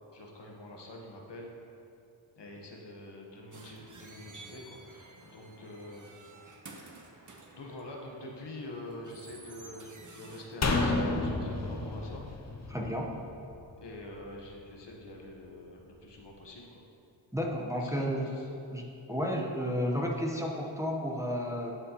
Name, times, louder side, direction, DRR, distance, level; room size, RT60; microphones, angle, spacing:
voice 1, 0.1-1.5 2.4-6.1 7.5-12.2 13.7-16.8 17.7-18.5, left 1 dB, 60° left, -1 dB, 1.1 m, -46 dB
sound 1, 3.5-10.8, right 3 dB, 40° right, 0.9 m, -52 dB
sound 2, 10.6-13.9 14.2-14.3, left 2 dB, 35° left, 0.7 m, -31 dB
voice 2, 12.7-13.1 17.3-18.3 18.7-21.7, equal, 5° right, -1 dB, 0.8 m, -32 dB
11.0 x 4.2 x 2.9 m, 2.7 s
cardioid pair, 40°, 47 cm